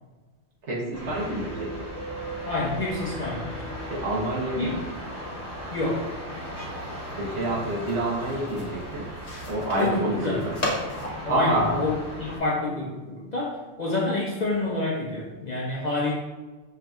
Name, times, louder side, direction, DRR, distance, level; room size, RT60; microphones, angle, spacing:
voice 1, 0.6-1.7 3.9-4.8 7.1-9.0 9.4-10.6 11.3-11.8, right 1 dB, 65° right, -4 dB, 1.3 m, -27 dB
sound 1, 0.9-12.4, equal, 15° left, 0.9 m, -37 dB
voice 2, 2.5-3.7 4.6-4.8 5.7-6.1 9.8-10.4 11.2-16.2, left 2 dB, 50° left, -5 dB, 0.6 m, -28 dB
sound 2, 7.0-12.5, left 1 dB, 65° left, 1.2 m, -36 dB
5.6 x 2.6 x 2.3 m, 1.2 s
omnidirectional pair, 1.3 m